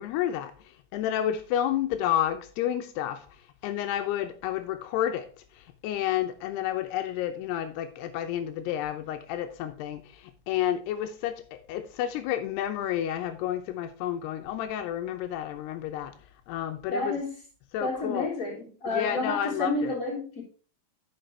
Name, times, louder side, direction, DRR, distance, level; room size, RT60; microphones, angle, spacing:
voice 1, 0.0-3.3 3.6-5.3 5.5-16.2 16.5-17.1 17.7-18.3 18.9-19.9, left 11 dB, 85° left, 2.8 m, -30 dB
voice 2, 16.9-17.4 17.8-20.4, left 2 dB, 20° left, 4.0 m, -30 dB
10.0 x 6.7 x 3.2 m
omnidirectional pair, 4.7 m